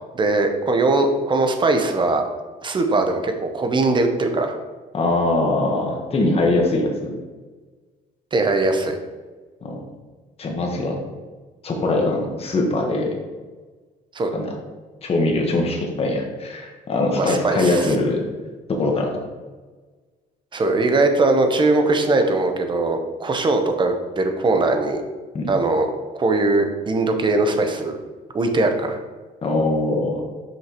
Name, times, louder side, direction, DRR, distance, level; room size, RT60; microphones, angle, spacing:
voice 1, 0.1-2.2 2.6-4.5 8.3-9.0 14.1-14.3 17.2-17.9 20.5-25.0 25.5-25.9 26.1-28.0 28.3-29.0, right 2 dB, 30° right, 5 dB, 0.8 m, -20 dB
voice 2, 4.9-7.1 9.6-9.8 10.4-11.0 11.6-13.1 14.3-14.5 15.0-18.2 18.7-19.2 25.3-25.5 29.4-30.2, left 2 dB, 35° left, 1 dB, 1.2 m, -22 dB
6.0 x 5.3 x 3.0 m, 1.3 s
cardioid pair, 110°, 17 cm